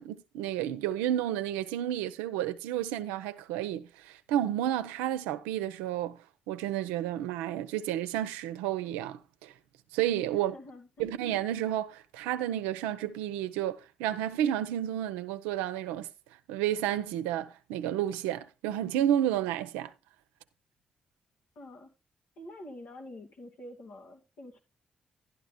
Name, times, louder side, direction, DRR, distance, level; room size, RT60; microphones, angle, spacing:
voice 1, 0.0-6.2 6.5-9.5 9.9-10.6 11.0-16.1 16.5-19.9, right 11 dB, 90° right, 0.6 m, -31 dB
voice 2, 10.3-11.2 21.6-21.9 22.4-24.6, left 1 dB, 75° left, 2.2 m, -47 dB
12.0 x 11.0 x 2.2 m
hypercardioid pair, 45°, 3 cm